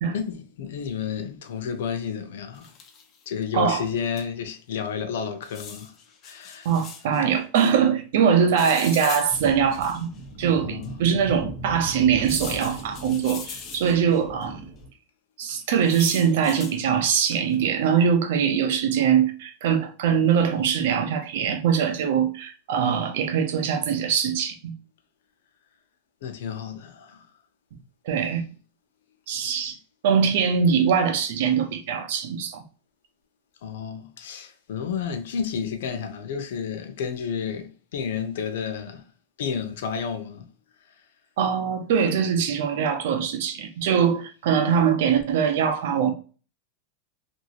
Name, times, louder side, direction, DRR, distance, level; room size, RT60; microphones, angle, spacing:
voice 1, 0.1-2.7 3.3-5.9 6.2-6.7 10.4-10.9 26.2-27.3 29.5-29.7 33.6-39.0 39.4-40.5, left 7 dB, 80° left, 0.6 m, -31 dB
sound 1, 2.5-3.2 4.2-4.3 4.5-4.6 5.4-7.2 8.6-10.2 10.8-10.9 12.2-14.2 15.5-16.8 17.3-17.6, left 6 dB, 30° left, 0.6 m, -40 dB
voice 2, 3.5-3.8 6.6-10.1 10.4-14.6 15.4-24.7 28.1-28.4 29.3-29.8 30.0-32.6 41.4-46.1, right 7 dB, 70° right, 0.7 m, -22 dB
sound 2, 9.3-14.9, right 1 dB, 25° right, 1.5 m, -39 dB
3.0 x 2.7 x 2.8 m
supercardioid pair, 145°, 0 cm